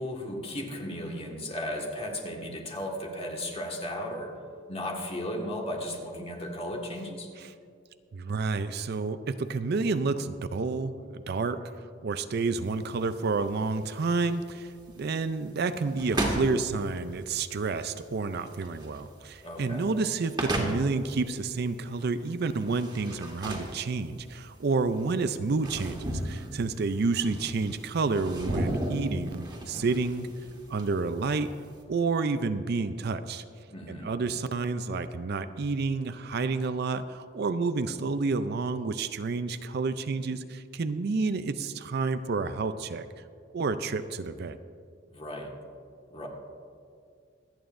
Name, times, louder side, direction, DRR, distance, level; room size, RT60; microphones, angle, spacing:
voice 1, 0.0-4.3 4.7-7.3 19.4-19.9 33.7-34.2 45.1-45.6 46.1-46.3, left 1 dB, 30° left, 0 dB, 1.6 m, -35 dB
voice 2, 8.1-30.3 30.7-31.5 31.9-33.4 33.9-43.1 43.5-44.6, right 4 dB, 55° right, 11 dB, 0.5 m, -30 dB
sound 1, 12.6-31.8, right 1 dB, 25° right, 1.7 m, -36 dB
25.5 x 9.1 x 2.6 m, 2.3 s
head